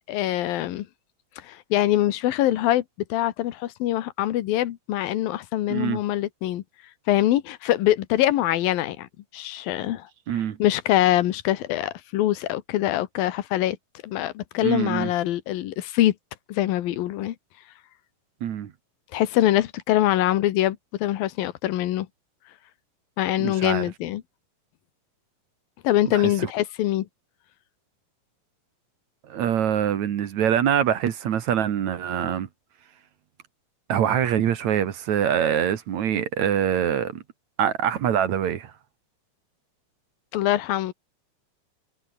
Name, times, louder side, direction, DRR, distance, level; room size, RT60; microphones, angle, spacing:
voice 1, 0.1-0.9 1.4-2.8 3.1-6.6 7.1-9.1 9.3-10.1 10.6-13.8 14.0-16.1 16.5-17.4 19.1-22.1 23.2-24.2 25.8-27.1 40.3-40.9, left 14 dB, 90° left, 3.0 m, -23 dB
voice 2, 5.7-6.0 10.3-10.6 14.6-15.1 18.4-18.7 23.4-23.8 26.0-26.5 29.3-32.5 33.9-37.2 37.6-38.7, right 9 dB, 60° right, 2.7 m, -24 dB
omnidirectional pair, 4.0 m